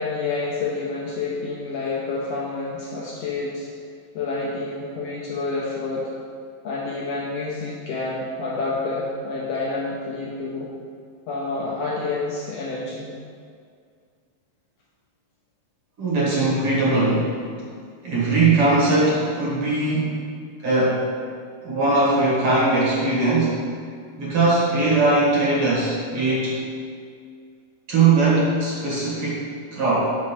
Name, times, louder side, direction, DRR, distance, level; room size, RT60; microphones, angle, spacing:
voice 1, 0.0-3.7 4.1-6.1 6.6-10.7 11.3-13.1, left 3 dB, 70° left, -5 dB, 1.6 m, -28 dB
voice 2, 16.0-17.3 18.0-20.1 20.6-21.0 21.6-23.6 24.2-26.6 27.9-30.0, right 3 dB, 50° right, -6 dB, 2.2 m, -20 dB
6.1 x 4.4 x 6.0 m, 2.2 s
omnidirectional pair, 3.7 m